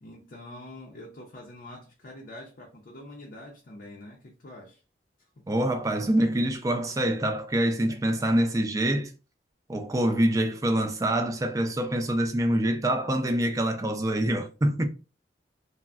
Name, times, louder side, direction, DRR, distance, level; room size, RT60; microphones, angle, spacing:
voice 1, 0.0-4.8 7.9-8.0, left 1 dB, 50° left, 0.5 m, -45 dB
voice 2, 5.5-9.1 9.7-14.9, right 1 dB, 20° right, 0.4 m, -25 dB
3.4 x 2.0 x 2.3 m
head